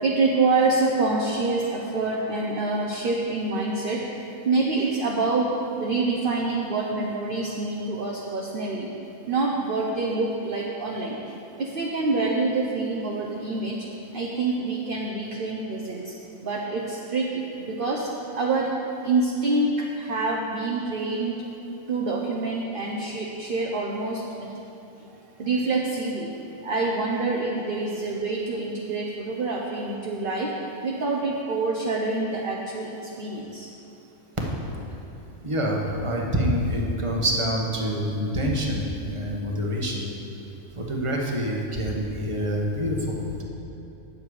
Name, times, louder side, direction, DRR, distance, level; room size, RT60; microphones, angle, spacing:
voice 1, 0.0-4.0 4.4-5.5 5.8-8.9 9.3-11.2 11.6-13.8 14.1-16.1 16.4-18.1 18.3-18.8 19.0-21.5 21.9-24.5 25.4-26.3 26.6-30.5 30.8-33.7, right 3 dB, 50° right, -1 dB, 0.8 m, -26 dB
voice 2, 35.4-40.0 40.8-43.4, equal, 25° right, -1 dB, 1.1 m, -26 dB
9.4 x 7.4 x 4.8 m, 2.9 s
omnidirectional pair, 1.4 m